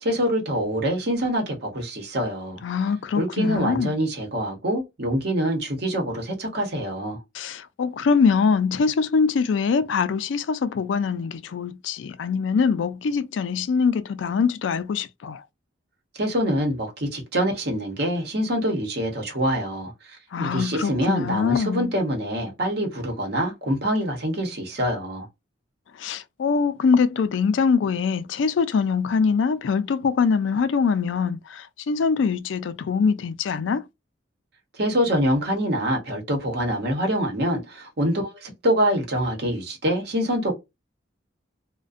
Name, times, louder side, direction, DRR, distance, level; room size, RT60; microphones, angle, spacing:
voice 1, 0.0-2.6 3.2-7.2 16.2-25.3 34.7-40.6, equal, 60° right, 0.9 m, -25 dB
voice 2, 2.6-3.9 7.3-15.4 20.3-21.9 26.0-33.8, left 5 dB, 85° left, 0.4 m, -23 dB
2.4 x 2.1 x 2.4 m
head